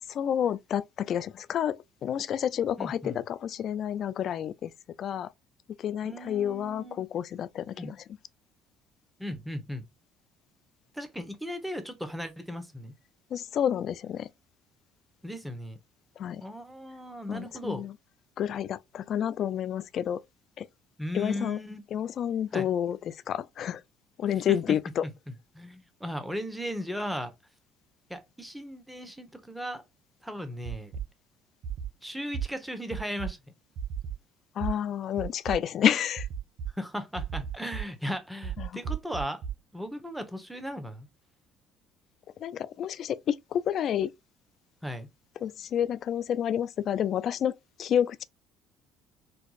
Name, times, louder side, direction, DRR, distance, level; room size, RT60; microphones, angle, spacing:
voice 1, 0.1-1.8 2.0-4.7 5.0-5.3 5.8-8.0 13.3-14.3 16.2-16.4 17.3-17.9 18.4-20.2 20.6-20.7 21.1-21.6 21.9-23.8 24.2-25.0 34.6-36.3 38.6-38.8 42.4-44.1 45.4-47.5 47.8-48.2, left 9 dB, 55° left, 0.3 m, -29 dB
voice 2, 2.8-3.2 6.0-7.0 7.8-7.9 9.2-9.8 10.9-12.9 15.2-15.8 16.4-17.9 21.0-21.8 22.5-22.7 24.3-24.8 25.5-27.3 28.1-29.8 30.2-30.9 32.0-33.4 36.7-39.4 39.7-41.1 44.8-45.1, equal, 5° right, 1.0 m, -36 dB
sound 1, 30.6-31.0 31.6-31.9 32.3-32.4 32.9-33.3 33.8-34.1 34.6-34.7 35.2-35.6 36.2-36.7 37.2-37.8 38.4-39.5, right 7 dB, 60° right, 0.9 m, -33 dB
4.5 x 2.5 x 2.4 m
supercardioid pair, 80°, 0 cm